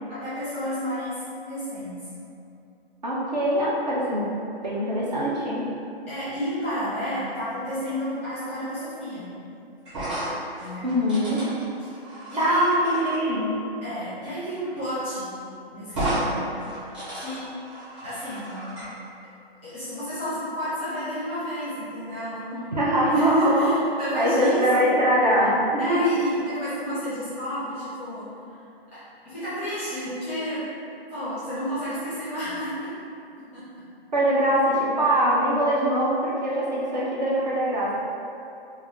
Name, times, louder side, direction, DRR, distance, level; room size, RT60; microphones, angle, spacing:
voice 1, 0.1-1.2 1.5-1.9 6.1-9.3 10.6-10.8 11.8-11.9 12.3-12.6 13.8-15.3 15.7-16.4 17.1-17.4 18.0-18.6 19.6-22.7 23.1-25.0 25.8-28.3 29.2-30.6 31.1-32.9 33.5-33.6, equal, 15° left, -13 dB, 0.6 m, -31 dB
voice 2, 3.0-4.2 4.6-5.6 10.8-11.4 12.4-13.5 22.7-23.7 24.2-26.0 34.1-37.9, equal, 45° right, -6 dB, 0.5 m, -22 dB
sound 1, 9.8-13.2 14.7-14.8 15.1-15.2 15.9-16.3 16.6-18.9, right 1 dB, 25° right, 1.0 m, -33 dB
2.4 x 2.3 x 3.4 m, 2.7 s
hypercardioid pair, 165°, 31 cm